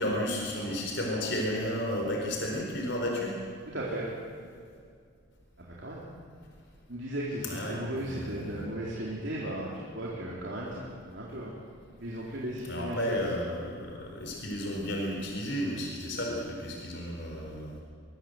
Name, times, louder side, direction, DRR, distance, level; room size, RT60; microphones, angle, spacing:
voice 1, 0.0-3.3 7.4-8.7 12.6-17.8, left 1 dB, 60° left, 0 dB, 4.2 m, -33 dB
voice 2, 3.7-4.0 5.6-6.0 6.9-11.5 12.0-13.2, right 1 dB, 60° right, -5 dB, 4.0 m, -36 dB
23.0 x 23.0 x 8.0 m, 2.2 s
head